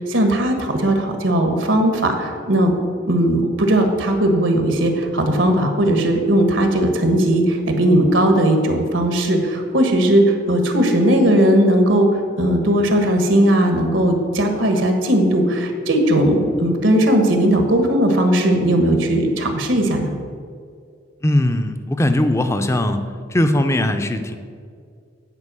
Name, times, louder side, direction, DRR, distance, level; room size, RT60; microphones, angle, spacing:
voice 1, 0.1-2.7 3.1-12.1 12.4-20.1, right 1 dB, 80° right, 4 dB, 1.3 m, -17 dB
voice 2, 21.2-23.0 23.3-24.4, left 1 dB, 15° left, 8 dB, 0.5 m, -19 dB
9.9 x 4.8 x 7.5 m, 2.2 s
head